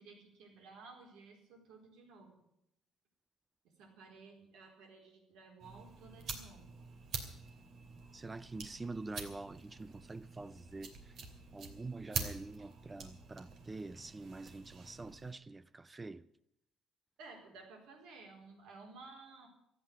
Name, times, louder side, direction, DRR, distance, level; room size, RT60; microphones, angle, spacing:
voice 1, 0.0-2.4 3.6-6.8 17.2-19.5, right 4 dB, 80° right, 4.4 m, -55 dB
sound 1, 5.6-15.3, right 4 dB, 55° right, 2.7 m, -46 dB
voice 2, 8.1-11.2 11.5-16.3, right 3 dB, 15° right, 0.4 m, -46 dB
14.0 x 9.0 x 9.6 m
cardioid pair, 120°, 0 cm